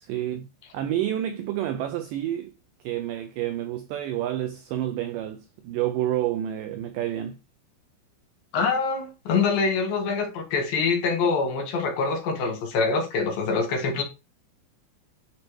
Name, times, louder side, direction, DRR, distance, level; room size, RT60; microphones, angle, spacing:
voice 1, 0.0-2.5 2.8-7.4, right 12 dB, 85° right, 1.9 m, -29 dB
voice 2, 8.5-14.0, left 4 dB, 70° left, 3.1 m, -25 dB
10.5 x 4.1 x 3.2 m
omnidirectional pair, 4.4 m